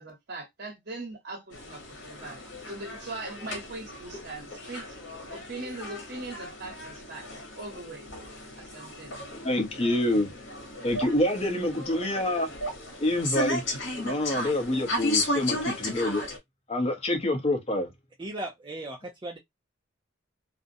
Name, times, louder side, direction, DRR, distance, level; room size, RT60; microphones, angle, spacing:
voice 1, 0.0-2.4 2.7-5.0 5.3-7.3 7.6-8.1 8.6-9.2, right 2 dB, 55° right, 1.1 m, -40 dB
sound 1, 1.5-16.4, left 1 dB, 65° left, 1.0 m, -35 dB
voice 2, 9.4-10.3 10.8-12.5 13.0-13.8 14.0-16.2 16.7-17.9, left 1 dB, 30° left, 0.7 m, -26 dB
voice 3, 18.2-19.4, right 1 dB, 25° right, 0.4 m, -37 dB
2.5 x 2.1 x 2.5 m
head